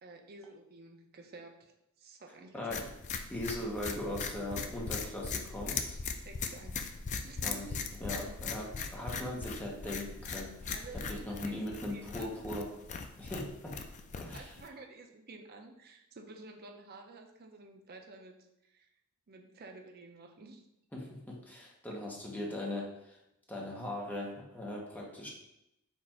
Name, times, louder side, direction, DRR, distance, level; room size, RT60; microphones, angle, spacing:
voice 1, 0.0-2.7 3.2-3.3 6.2-6.8 7.2-7.6 8.2-8.3 10.7-12.4 14.3-18.9 19.3-20.6 21.9-22.0, right 3 dB, 45° right, 4 dB, 0.5 m, -51 dB
voice 2, 2.5-2.9 3.3-6.0 7.4-10.7 11.1-12.7 13.2-13.8 14.2-14.5 20.9-23.2 23.5-25.3, left 1 dB, 10° left, -3 dB, 0.8 m, -39 dB
sound 1, 2.7-14.7, left 5 dB, 35° left, 0.3 m, -40 dB
4.4 x 2.5 x 4.3 m, 0.84 s
head